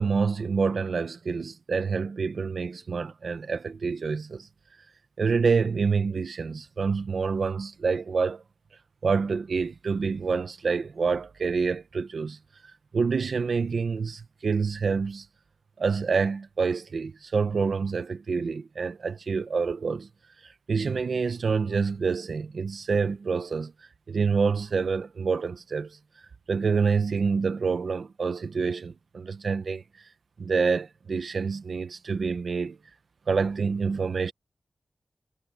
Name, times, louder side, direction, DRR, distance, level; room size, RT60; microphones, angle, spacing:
voice 1, 0.0-4.5 5.2-8.4 9.0-12.4 12.9-15.3 15.8-20.1 20.4-23.7 24.1-26.0 26.5-29.8 30.4-32.8 33.3-34.3, right 5 dB, 80° right, 1.1 m, -27 dB
wide cardioid pair, 105°, 0 cm